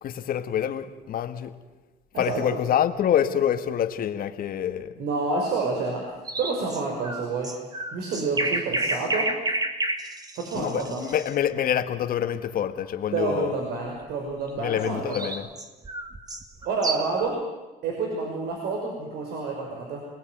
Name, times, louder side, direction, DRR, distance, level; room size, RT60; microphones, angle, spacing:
voice 1, 0.0-1.6 2.2-5.0 10.5-13.5 14.6-15.5, left 9 dB, 60° left, 2.0 m, -26 dB
voice 2, 5.0-6.0 6.4-7.5 7.9-9.3 10.4-11.0 13.1-15.3 16.6-17.4 17.8-20.0, right 3 dB, 75° right, 5.6 m, -28 dB
sound 1, 6.2-11.3 14.8-17.2, right 2 dB, 25° right, 2.9 m, -30 dB
29.5 x 20.5 x 9.4 m
cardioid pair, 110°, 17 cm